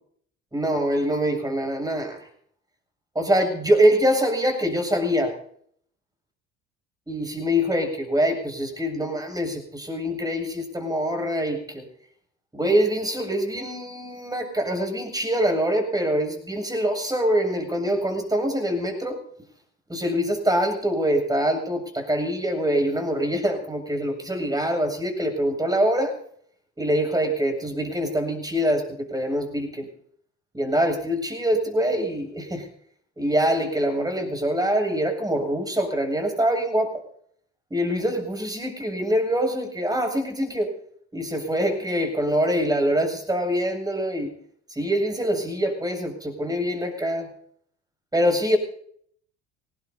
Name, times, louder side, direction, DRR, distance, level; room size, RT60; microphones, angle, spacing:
voice 1, 0.5-2.2 3.1-5.4 7.1-11.9 12.5-19.2 19.9-26.2 26.8-29.9 30.5-32.7 33.2-37.0 37.7-40.7 41.1-44.3 44.7-47.3 48.1-48.6, equal, 10° right, 5 dB, 7.7 m, -24 dB
25.5 x 19.5 x 2.8 m, 0.63 s
hypercardioid pair, 70°, 32 cm